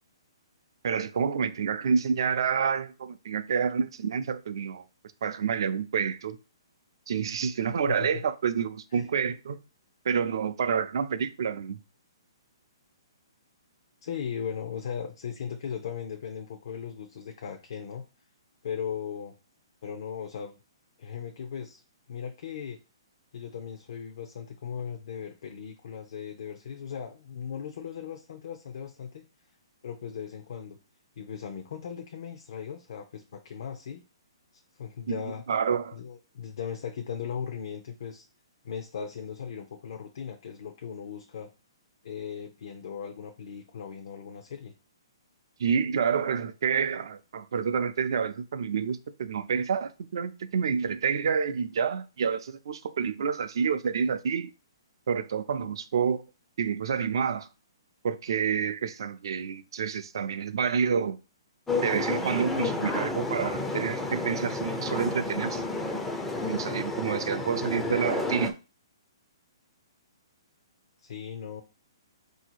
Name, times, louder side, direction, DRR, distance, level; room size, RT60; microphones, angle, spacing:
voice 1, 0.8-4.8 5.2-6.4 7.1-9.6 10.0-11.8 35.1-35.2 35.5-36.0 45.6-54.5 55.1-56.2 56.6-57.5 58.0-61.2 61.8-65.6 66.4-68.6, right 6 dB, 65° right, 0.5 m, -28 dB
voice 2, 7.9-8.2 8.9-9.1 14.0-18.1 18.6-19.3 19.8-20.6 21.0-21.8 22.1-22.8 23.3-29.3 29.8-30.8 31.2-34.0 34.8-35.4 35.9-38.2 38.6-41.5 42.0-44.7 71.0-71.6, left 7 dB, 60° left, 0.6 m, -38 dB
sound 1, 61.7-68.5, left 2 dB, 5° left, 0.4 m, -31 dB
4.0 x 2.7 x 4.5 m
hypercardioid pair, 155°, 3 cm